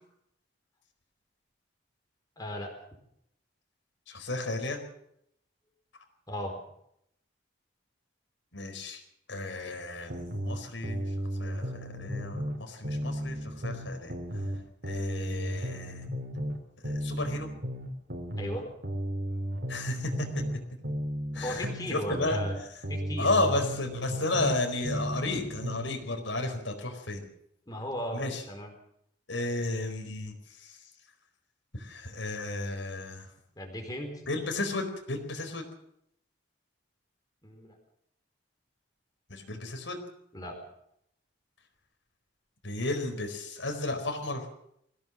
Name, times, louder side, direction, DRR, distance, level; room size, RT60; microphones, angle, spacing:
voice 1, 2.4-2.7 6.3-6.5 18.4-18.7 21.3-22.6 22.9-23.3 27.7-28.7 33.6-34.1 37.4-37.8 40.3-40.6, equal, 20° left, 2 dB, 4.5 m, -36 dB
voice 2, 4.1-4.8 8.5-9.0 9.3-11.1 11.4-14.1 14.8-16.1 16.8-17.5 19.7-20.3 21.3-22.4 23.2-27.3 28.1-28.4 29.3-30.8 31.7-33.3 34.3-35.6 39.3-40.0 42.6-44.5, left 2 dB, 80° left, 4 dB, 4.6 m, -33 dB
sound 1, 10.1-12.6 12.8-16.6 16.8-20.6 20.8-24.6 24.8-25.9, equal, 55° right, 4.1 m, -34 dB
22.0 x 16.5 x 7.5 m, 0.74 s
head